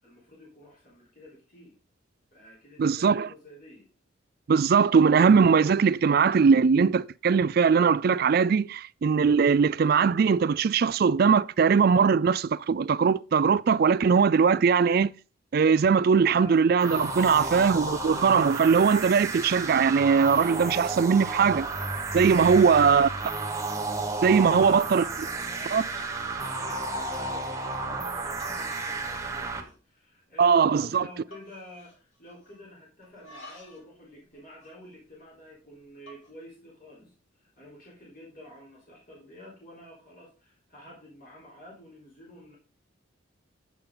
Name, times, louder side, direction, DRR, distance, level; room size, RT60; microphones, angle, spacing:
voice 1, 0.0-1.7 2.3-3.9 16.1-16.6 17.2-17.6 22.4-23.1 24.3-37.1 37.6-42.6, left 1 dB, 45° left, 3.8 m, -49 dB
voice 2, 2.8-3.3 4.5-15.1 15.5-21.7 22.1-23.1 24.2-25.0 25.7-25.8 30.4-31.0, right 6 dB, 50° right, 0.3 m, -21 dB
sound 1, 16.8-29.6, right 3 dB, 15° right, 1.1 m, -32 dB
sound 2, 18.7-18.9 19.3-19.7 19.9-20.6 20.9-21.3 22.0-22.1 22.6-23.2 23.6-24.1 24.4-24.6 25.1-25.2 25.7-26.3 26.7-27.0 28.1-28.2 28.4-29.0 29.3-29.9 30.2-30.3 30.5-30.9 31.3-32.7 33.0-33.9 34.2-35.5 35.9-36.3, left 1 dB, 80° left, 3.4 m, -53 dB
8.4 x 7.1 x 3.8 m
head